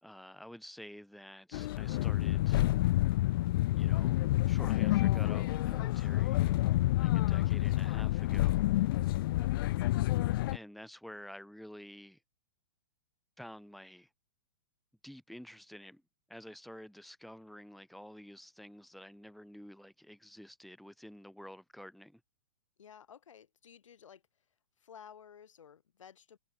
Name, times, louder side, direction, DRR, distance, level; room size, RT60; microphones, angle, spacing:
voice 1, 0.0-2.7 3.7-6.5 7.0-9.1 10.5-12.2 13.4-14.1 15.0-16.0 16.3-22.2, equal, ahead, 1.9 m, -50 dB
sound 1, 1.5-10.6, left 16 dB, 45° left, 0.5 m, -28 dB
voice 2, 9.4-9.7 22.8-24.2 24.8-26.4, left 8 dB, 90° left, 3.4 m, -54 dB
hypercardioid pair, 150°, 16 cm